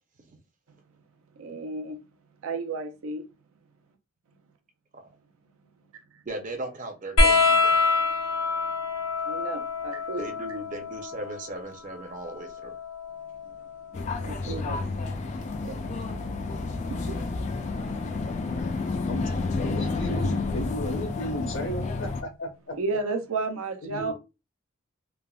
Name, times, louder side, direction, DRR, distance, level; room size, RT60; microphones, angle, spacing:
voice 1, 1.3-2.0 2.4-3.3 6.1-6.2 9.2-10.3 14.2-14.8 15.6-15.8 16.3-17.2 22.7-24.1, right 3 dB, 85° right, 0.5 m, -33 dB
voice 2, 6.3-7.8 10.2-12.7 15.8-15.9, right 2 dB, 35° right, 0.5 m, -37 dB
sound 1, 7.2-14.2 15.6-16.4 17.7-17.8, left 3 dB, 80° left, 1.2 m, -26 dB
sound 2, 13.9-22.2, left 3 dB, 35° left, 0.3 m, -30 dB
voice 3, 19.6-22.7 23.8-24.1, equal, 60° left, 0.7 m, -34 dB
3.3 x 2.0 x 2.3 m
head